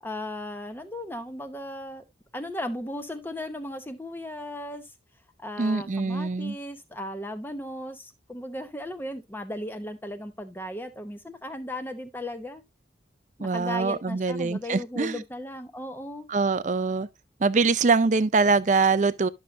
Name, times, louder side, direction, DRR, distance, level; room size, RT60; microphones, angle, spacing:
voice 1, 0.0-2.0 2.3-4.9 5.4-12.6 13.4-16.3, left 1 dB, 10° left, 0.8 m, -36 dB
voice 2, 5.6-6.6 13.4-15.2 16.3-17.1 17.4-19.3, right 4 dB, 40° right, 0.4 m, -23 dB
11.0 x 6.5 x 2.4 m
head